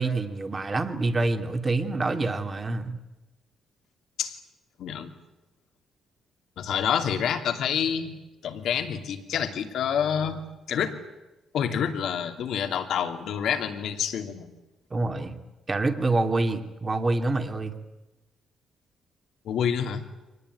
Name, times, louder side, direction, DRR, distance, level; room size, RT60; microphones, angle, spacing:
voice 1, 0.0-3.0 14.9-15.4 15.7-17.7, right 2 dB, 30° right, 7 dB, 2.4 m, -26 dB
voice 2, 4.8-5.1 6.6-8.1 8.4-10.4 10.7-11.0 11.5-14.5 19.4-20.0, left 8 dB, 75° left, 6 dB, 2.7 m, -27 dB
24.0 x 19.5 x 9.5 m, 1.1 s
cardioid pair, 90°, 0 cm